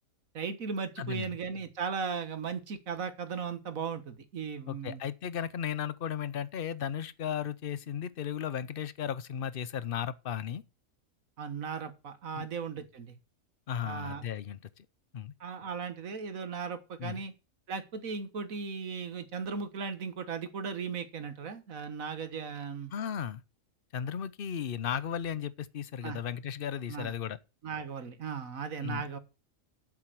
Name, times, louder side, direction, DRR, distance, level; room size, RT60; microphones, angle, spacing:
voice 1, 0.3-5.0 11.4-13.2 13.8-14.2 15.4-17.3 17.7-22.9 26.0-26.2 26.9-27.1 27.6-29.2, right 5 dB, 70° right, 1.7 m, -37 dB
voice 2, 1.0-1.3 4.7-10.6 12.3-12.5 13.7-14.9 15.1-15.3 17.0-17.2 22.9-23.4 23.9-27.4 28.8-29.2, left 8 dB, 50° left, 0.8 m, -35 dB
7.9 x 7.3 x 7.6 m
omnidirectional pair, 1.5 m